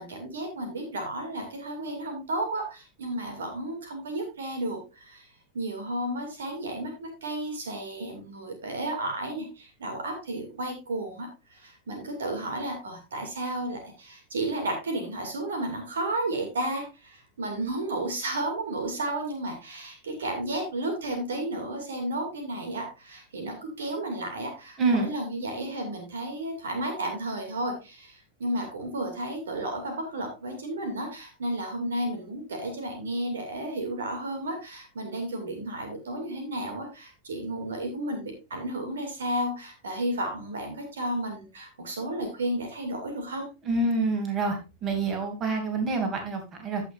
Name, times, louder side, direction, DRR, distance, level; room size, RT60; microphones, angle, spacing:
voice 1, 0.0-5.3 5.5-43.5, right 1 dB, 65° right, 4 dB, 2.4 m, -33 dB
voice 2, 43.6-46.8, right 3 dB, 30° right, 5 dB, 2.7 m, -27 dB
15.5 x 5.9 x 2.5 m, 0.28 s
figure-of-eight pair, 90°, 0 cm